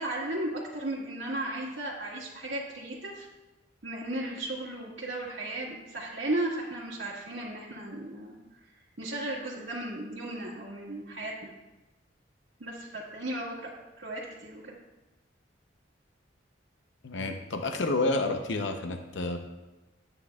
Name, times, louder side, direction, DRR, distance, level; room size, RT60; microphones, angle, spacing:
voice 1, 0.0-3.3 3.8-8.4 9.0-11.5 12.6-13.7 14.0-14.8, right 1 dB, 80° right, -8 dB, 1.8 m, -35 dB
voice 2, 17.0-19.4, left 2 dB, 70° left, 6 dB, 0.7 m, -29 dB
11.5 x 8.9 x 2.3 m, 1.1 s
head